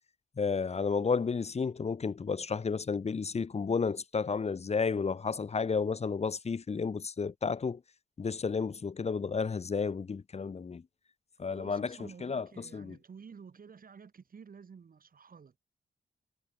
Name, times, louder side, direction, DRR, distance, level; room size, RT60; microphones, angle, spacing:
voice 1, 0.4-7.8 8.2-10.8 11.4-12.9, left 5 dB, 40° left, 1.0 m, -32 dB
voice 2, 11.5-15.6, right 6 dB, 55° right, 6.6 m, -52 dB
cardioid pair, 70°, 18 cm